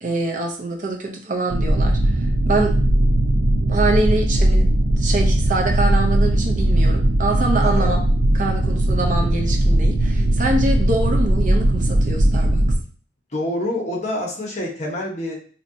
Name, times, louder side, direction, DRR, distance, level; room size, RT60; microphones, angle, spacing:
voice 1, 0.0-2.1 2.5-2.8 3.7-4.7 5.0-8.0 8.3-12.7, right 2 dB, 45° right, 1 dB, 0.7 m, -24 dB
sound 1, 1.5-12.8, right 1 dB, 85° right, 0.7 m, -18 dB
voice 2, 7.6-7.9 13.3-15.4, left 1 dB, 40° left, -1 dB, 1.1 m, -27 dB
4.3 x 2.8 x 2.7 m, 0.43 s
head